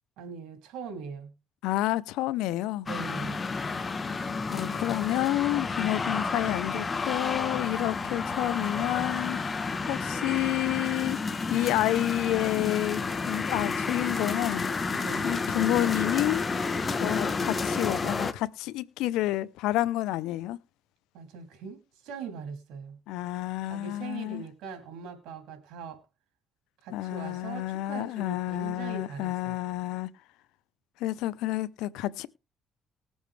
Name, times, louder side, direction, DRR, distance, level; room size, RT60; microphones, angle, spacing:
voice 1, 0.2-1.3 2.9-3.5 14.9-15.6 21.1-23.0 23.7-26.0 26.8-29.6, right 6 dB, 80° right, 2.7 m, -41 dB
voice 2, 1.6-2.9 4.5-11.2 11.5-14.7 15.2-16.4 17.0-20.6 23.1-24.4 26.9-30.1 31.0-32.3, left 15 dB, 90° left, 0.6 m, -29 dB
sound 1, 2.9-18.3, left 4 dB, 30° left, 1.1 m, -31 dB
19.5 x 7.2 x 3.3 m
cardioid pair, 90°, 0 cm